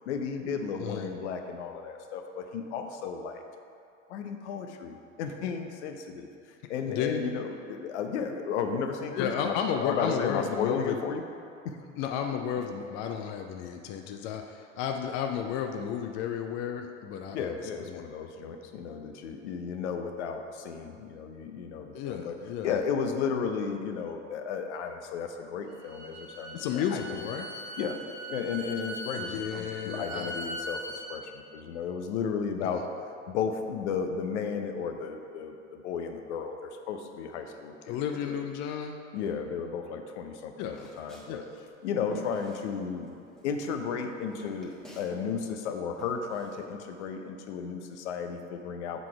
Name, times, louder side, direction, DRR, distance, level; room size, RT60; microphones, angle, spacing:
voice 1, 0.1-3.4 4.1-6.3 6.7-11.2 11.6-11.8 17.3-22.4 22.6-27.2 27.8-28.0 28.3-30.8 31.1-32.9 33.3-38.0 38.3-38.4 39.1-41.4 41.8-43.1 43.4-49.1, left 6 dB, 60° left, 5 dB, 0.7 m, -34 dB
voice 2, 0.8-1.1 6.9-7.2 9.1-11.0 12.0-18.0 21.9-22.7 26.5-27.5 29.1-30.4 32.6-32.8 37.9-39.0 40.6-40.9 41.3-41.5, left 8 dB, 30° left, 4 dB, 0.4 m, -33 dB
Bowed string instrument, 25.7-31.0, right 1 dB, 40° right, 1.5 m, -40 dB
Walk footsteps, 40.7-43.1 43.4-45.3 45.5-47.1, right 1 dB, ahead, 1.3 m, -49 dB
7.5 x 4.0 x 4.7 m, 2.5 s
figure-of-eight pair, 85°, 39 cm